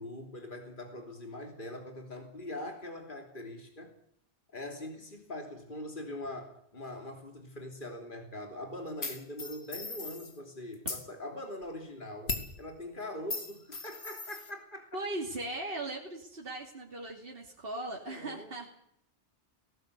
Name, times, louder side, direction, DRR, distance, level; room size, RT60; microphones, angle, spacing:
voice 1, 0.0-3.9 4.5-15.0 18.1-18.5, left 1 dB, 50° left, 3 dB, 3.3 m, -42 dB
sound 1, 9.0-10.3 10.7-11.1 12.3-12.6 13.3-14.5, left 3 dB, 85° left, 2.6 m, -38 dB
voice 2, 14.9-18.8, right 2 dB, 60° right, -1 dB, 3.0 m, -38 dB
19.5 x 18.0 x 8.3 m, 0.70 s
omnidirectional pair, 1.1 m